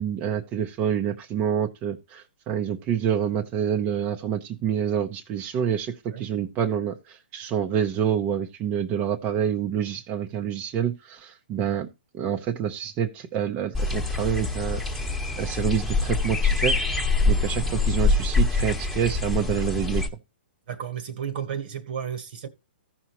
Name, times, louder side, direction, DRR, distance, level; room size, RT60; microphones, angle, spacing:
voice 1, 0.0-11.9 12.1-14.8 15.4-20.0, right 8 dB, 25° right, 0.8 m, -27 dB
sound 1, 13.7-20.1, left 3 dB, ahead, 1.3 m, -24 dB
voice 2, 20.7-22.5, right 8 dB, 55° right, 1.4 m, -33 dB
15.0 x 5.8 x 3.1 m
hypercardioid pair, 145°, 6 cm